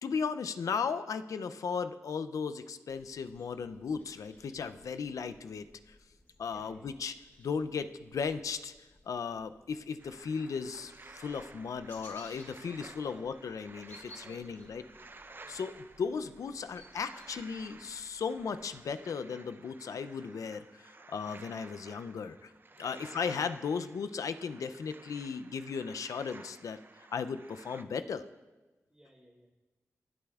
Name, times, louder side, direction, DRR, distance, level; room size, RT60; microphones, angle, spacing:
voice 1, 0.0-6.0 6.4-8.7 9.1-14.8 15.5-22.5 22.8-26.8 27.1-28.3, left 5 dB, 80° left, 11 dB, 0.4 m, -36 dB
sound 1, 2.9-18.9, left 1 dB, 45° left, 3.7 m, -60 dB
voice 2, 6.4-7.0 12.9-13.4 14.2-14.6 15.4-15.5 22.7-23.2 28.9-29.5, right 1 dB, 10° right, -7 dB, 2.4 m, -57 dB
sound 2, 10.0-27.8, right 3 dB, 40° right, 0.6 m, -54 dB
18.0 x 8.4 x 2.4 m, 1.2 s
cardioid pair, 45°, 6 cm